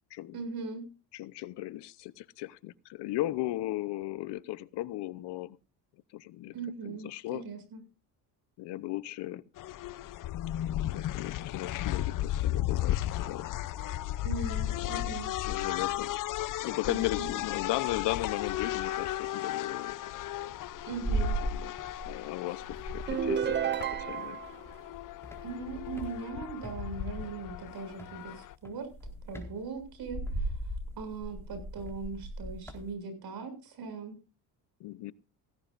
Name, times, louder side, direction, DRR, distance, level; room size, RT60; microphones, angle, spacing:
voice 1, 0.3-0.8 6.5-7.8 14.2-15.3 16.9-17.0 20.8-21.4 25.4-28.9 29.2-30.5 30.9-34.1, right 4 dB, 60° right, 6.7 m, -39 dB
voice 2, 1.1-5.6 6.1-6.5 6.8-7.4 8.6-9.4 10.6-13.5 14.7-15.1 15.4-16.1 16.6-20.1 21.5-21.8 22.0-23.6 24.0-24.4 34.8-35.1, left 16 dB, 75° left, 0.8 m, -36 dB
sound 1, 9.6-28.5, left 13 dB, 50° left, 0.6 m, -35 dB
sound 2, 20.3-22.3 22.6-24.8 25.2-26.8 27.9-28.2 28.6-32.9, right 2 dB, 5° left, 4.2 m, -37 dB
sound 3, 23.1-24.6, right 8 dB, 25° right, 0.6 m, -31 dB
16.5 x 16.5 x 2.5 m
cardioid pair, 105°, 41 cm